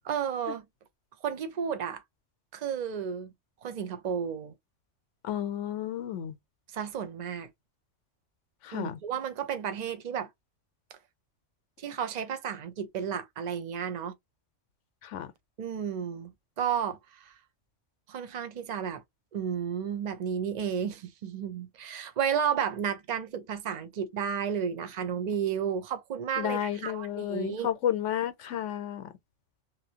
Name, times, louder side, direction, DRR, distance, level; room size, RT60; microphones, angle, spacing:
voice 1, 0.1-0.6 1.2-2.0 2.5-3.3 3.6-4.5 6.7-7.5 8.7-10.3 11.8-14.1 15.6-17.4 18.1-19.0 19.3-27.7, right 8 dB, 45° right, 0.6 m, -32 dB
voice 2, 5.2-6.3 8.6-9.0 15.0-15.3 26.4-29.1, left 10 dB, 80° left, 0.9 m, -32 dB
3.0 x 2.6 x 2.7 m
omnidirectional pair, 1.3 m